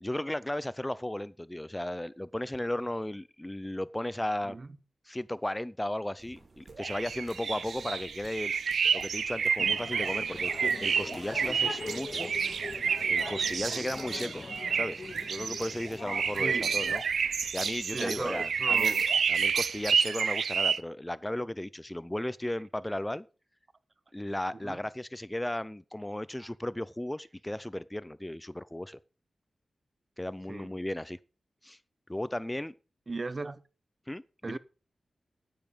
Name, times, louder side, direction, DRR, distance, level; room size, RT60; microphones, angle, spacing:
voice 1, 0.0-4.6 5.1-8.5 8.9-12.6 13.1-14.4 14.7-17.0 17.5-19.0 19.3-23.3 24.1-29.0 30.2-31.2 31.6-31.8 32.1-32.7 34.1-34.6, left 1 dB, 15° left, 0.5 m, -35 dB
sound 1, 6.2-19.9, right 2 dB, 60° right, 3.8 m, -50 dB
sound 2, 6.8-20.8, right 6 dB, 90° right, 0.5 m, -29 dB
sound 3, 9.6-17.0, left 3 dB, 45° left, 0.7 m, -42 dB
voice 2, 16.4-16.7 17.9-19.0 24.6-24.8 26.4-26.5 30.5-30.7 33.1-33.6 34.4-34.6, right 3 dB, 45° right, 0.8 m, -37 dB
9.9 x 9.3 x 5.5 m
cardioid pair, 70°, 0 cm